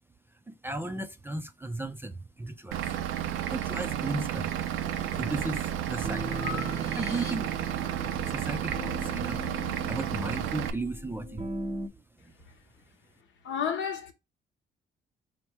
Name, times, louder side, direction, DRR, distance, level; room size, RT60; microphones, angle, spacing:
voice 1, 0.5-2.9 3.5-4.7 5.1-6.4 6.9-7.5 8.3-9.4 9.9-11.4, right 2 dB, 10° right, 0.3 m, -35 dB
Vehicle / Engine, 2.7-10.7, right 11 dB, 85° right, 0.5 m, -32 dB
Breathing, 4.5-5.0 5.5-7.8, left 5 dB, 20° left, 1.0 m, -43 dB
sound 1, 4.8-11.9, equal, 30° right, 0.7 m, -40 dB
voice 2, 13.4-14.1, left 7 dB, 70° left, 0.9 m, -30 dB
4.3 x 2.1 x 4.3 m
cardioid pair, 90°, 20 cm